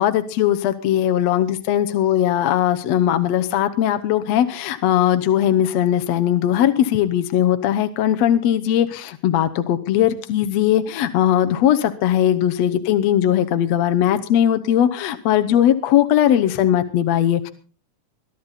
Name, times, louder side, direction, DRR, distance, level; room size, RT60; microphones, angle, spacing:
voice 1, 0.0-17.5, left 11 dB, 70° left, 8 dB, 2.0 m, -19 dB
22.5 x 12.5 x 4.1 m, 0.36 s
omnidirectional pair, 3.4 m